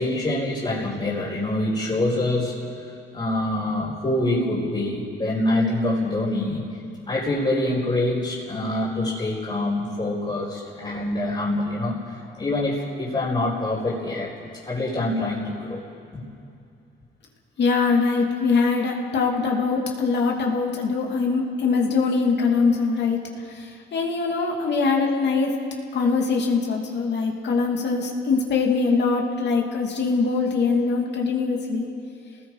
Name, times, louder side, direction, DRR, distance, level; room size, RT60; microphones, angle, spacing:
voice 1, 0.0-2.6 3.1-6.7 7.1-12.0 12.4-14.3 14.6-15.8 16.1-16.2, left 1 dB, 30° left, -8 dB, 4.6 m, -25 dB
voice 2, 17.6-23.2 23.5-25.5 25.9-31.9, left 4 dB, 60° left, 1 dB, 2.7 m, -22 dB
28.5 x 19.5 x 4.8 m, 2.5 s
cardioid pair, 90°, 20 cm